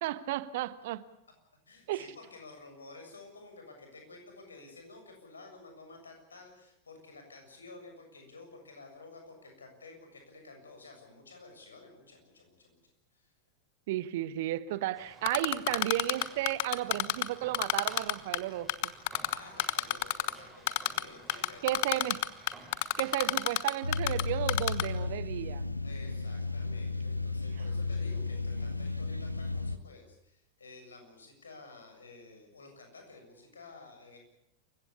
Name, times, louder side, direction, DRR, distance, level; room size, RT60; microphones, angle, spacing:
voice 1, 0.0-1.0 1.9-2.1 13.9-18.9 21.6-22.2 23.0-25.7, right 14 dB, 50° right, 1.2 m, -33 dB
voice 2, 1.7-12.8 13.1-13.3 19.3-22.0 25.8-34.2, left 3 dB, 75° left, 7.1 m, -52 dB
sound 1, 14.9-23.6, right 2 dB, 10° right, 7.1 m, -54 dB
Typing, 15.3-17.3 17.5-18.4 18.7-20.3 20.7-21.0 21.3-24.2 24.5-24.8, left 21 dB, 50° left, 1.2 m, -28 dB
sound 2, 23.8-29.8, left 3 dB, 90° left, 1.0 m, -34 dB
28.5 x 16.0 x 8.4 m
figure-of-eight pair, 90°, 0 cm